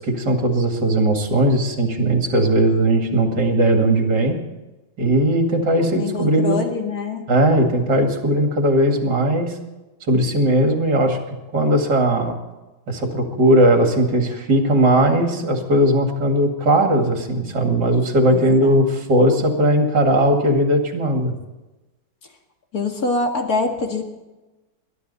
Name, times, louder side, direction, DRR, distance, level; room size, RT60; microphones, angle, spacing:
voice 1, 0.1-4.4 5.0-6.6 7.3-9.5 10.1-11.2 11.5-12.3 12.9-21.3, right 1 dB, 55° right, 3 dB, 2.8 m, -18 dB
voice 2, 5.9-7.3 18.3-18.8 22.7-24.0, left 3 dB, 45° left, 2 dB, 2.4 m, -24 dB
21.5 x 12.0 x 4.2 m, 1.1 s
omnidirectional pair, 2.3 m